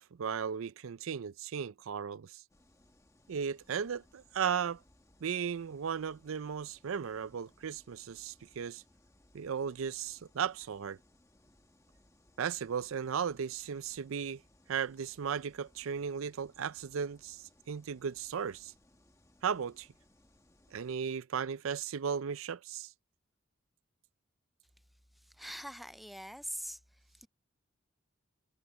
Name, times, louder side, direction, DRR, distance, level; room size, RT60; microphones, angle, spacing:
voice 1, 0.0-2.4 3.3-4.8 5.2-8.8 9.3-11.0 12.4-14.4 14.7-18.7 19.4-19.9 20.7-22.9, right 7 dB, 80° right, 0.5 m, -36 dB
sound 1, 2.5-20.9, left 1 dB, 15° left, 1.4 m, -66 dB
voice 2, 25.1-27.3, equal, ahead, 0.3 m, -44 dB
head